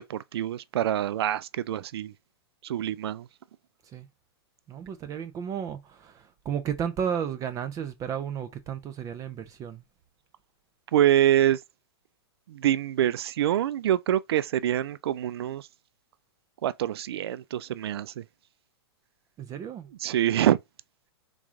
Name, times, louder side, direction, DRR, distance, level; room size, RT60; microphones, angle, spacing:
voice 1, 0.0-2.1 2.6-3.3 10.9-11.6 12.5-15.7 16.6-18.2 20.0-20.6, right 11 dB, 70° right, 0.4 m, -25 dB
voice 2, 4.7-9.8 19.4-19.9, right 8 dB, 25° right, 0.6 m, -33 dB
3.8 x 3.0 x 3.6 m
hypercardioid pair, 120°, 14 cm